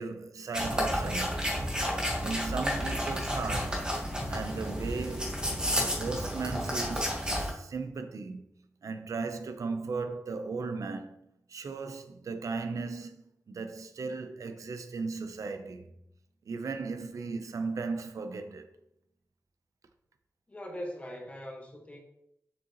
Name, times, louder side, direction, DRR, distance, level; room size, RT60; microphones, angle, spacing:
voice 1, 0.0-1.5 2.2-3.8 4.3-5.4 5.7-8.5 8.8-11.2 11.5-13.2 13.5-15.8 16.5-18.7, right 4 dB, 75° right, 0.7 m, -36 dB
sound 1, 0.5-7.5, equal, 15° right, 1.5 m, -31 dB
voice 2, 20.5-22.0, equal, 25° left, 1.5 m, -41 dB
6.7 x 6.5 x 3.0 m
wide cardioid pair, 140°, 6 cm